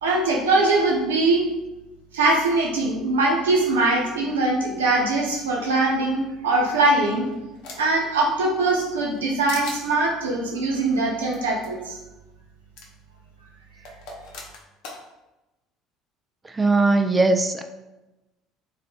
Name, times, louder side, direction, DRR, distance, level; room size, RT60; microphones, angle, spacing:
voice 1, 0.0-1.4 2.1-7.3 7.8-12.0, right 2 dB, 75° right, -2 dB, 0.9 m, -22 dB
sound 1, 6.7-8.0 8.5-9.2 9.5-9.8 11.3-11.4 11.6-11.7 12.8-12.9 13.8-15.0, left 3 dB, 60° left, 0.8 m, -39 dB
voice 2, 16.4-17.6, right 3 dB, 20° right, 7 dB, 0.4 m, -19 dB
3.3 x 3.2 x 4.0 m, 1.0 s
figure-of-eight pair, 60°, 0 cm